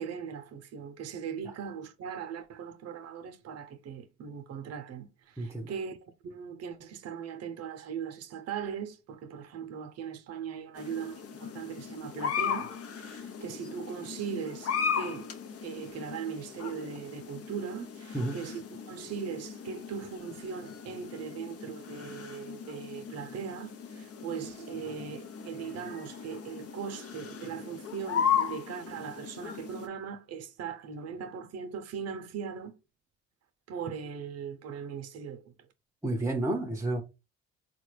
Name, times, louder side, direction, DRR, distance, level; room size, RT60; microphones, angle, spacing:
voice 1, 0.0-6.0 6.2-15.4 15.6-32.7 33.7-35.7, right 7 dB, 55° right, 0.7 m, -39 dB
voice 2, 5.4-5.7 18.1-18.4 36.0-37.0, right 2 dB, 10° right, 0.7 m, -30 dB
sound 1, 10.8-29.9, left 7 dB, 50° left, 0.7 m, -37 dB
3.8 x 2.2 x 3.2 m
supercardioid pair, 70°, 30 cm